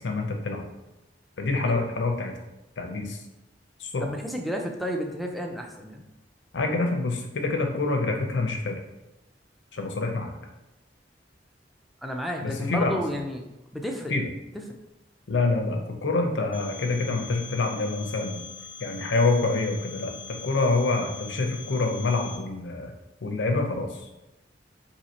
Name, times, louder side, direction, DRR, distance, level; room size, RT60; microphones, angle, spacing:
voice 1, 0.0-0.7 1.4-2.3 2.8-3.2 3.8-4.1 6.5-8.7 9.7-10.3 12.4-13.0 14.1-14.3 15.3-18.4 18.8-20.1 20.4-22.9 23.2-23.9, left 3 dB, 80° left, 3 dB, 0.6 m, -26 dB
voice 2, 4.0-6.0 12.0-13.4 13.7-14.1, equal, ahead, 2 dB, 0.4 m, -31 dB
Telephone, 16.5-22.4, left 5 dB, 30° right, 1.0 m, -42 dB
2.8 x 2.8 x 4.1 m, 0.97 s
head